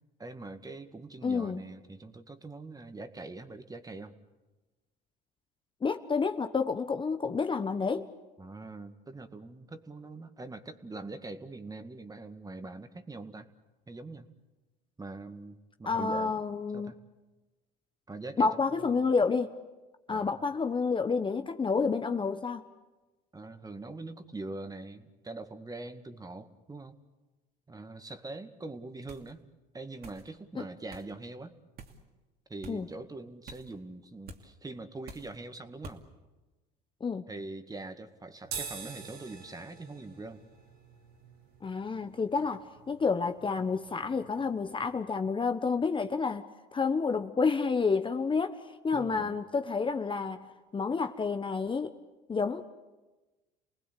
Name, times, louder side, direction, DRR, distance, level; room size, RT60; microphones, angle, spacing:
voice 1, 0.2-4.1 8.4-13.5 13.9-14.3 15.0-16.3 16.7-17.0 18.1-19.1 20.1-20.4 23.3-27.0 27.7-29.5 29.7-31.6 32.5-36.0 37.3-40.4 48.9-49.4, right 2 dB, 15° right, 9 dB, 2.0 m, -43 dB
voice 2, 1.2-1.6 5.8-8.1 15.9-16.9 18.4-19.5 20.1-22.6 30.5-30.6 32.7-32.9 37.0-37.2 41.6-46.5 46.7-51.9 52.3-52.7, left 5 dB, 25° left, 8 dB, 1.1 m, -29 dB
sound 1, 29.1-29.3 30.0-30.3 30.9-31.1 31.8-32.0 32.6-32.8 33.5-33.7 34.3-34.4 35.1-35.3 35.8-36.0, right 3 dB, 50° right, 2.8 m, -47 dB
sound 2, 38.4-45.0, right 6 dB, 80° right, 3.8 m, -46 dB
29.5 x 19.5 x 8.4 m, 1.2 s
supercardioid pair, 85°, 21 cm